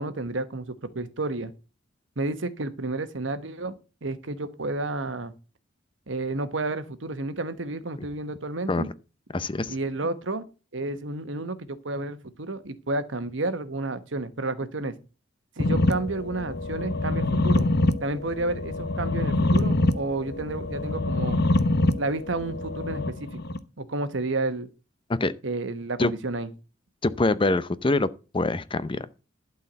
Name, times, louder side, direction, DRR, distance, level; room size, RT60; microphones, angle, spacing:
voice 1, 0.0-1.5 2.2-3.7 4.0-5.3 6.1-8.9 9.7-10.4 10.7-14.9 15.6-17.7 18.0-21.4 22.0-23.3 23.8-24.7 25.4-26.5, right 2 dB, 80° right, 1.3 m, -31 dB
voice 2, 9.3-9.7 25.1-25.3 26.0-26.1 27.0-28.1 28.3-29.1, left 2 dB, 25° left, 0.6 m, -24 dB
sound 1, 15.6-23.6, left 2 dB, 60° left, 0.9 m, -25 dB
12.0 x 4.7 x 8.0 m
head